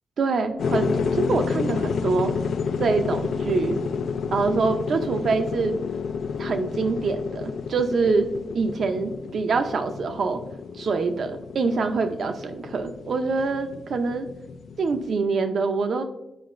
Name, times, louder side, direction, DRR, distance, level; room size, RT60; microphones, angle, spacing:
voice 1, 0.2-2.3 2.8-3.8 4.3-5.7 6.4-8.3 8.5-10.4 10.8-14.3 14.8-16.0, right 4 dB, 60° right, 7 dB, 0.6 m, -25 dB
sound 1, 0.6-15.1, left 5 dB, 75° left, 0.3 m, -30 dB
9.0 x 4.7 x 2.5 m, 0.90 s
wide cardioid pair, 145°, 0 cm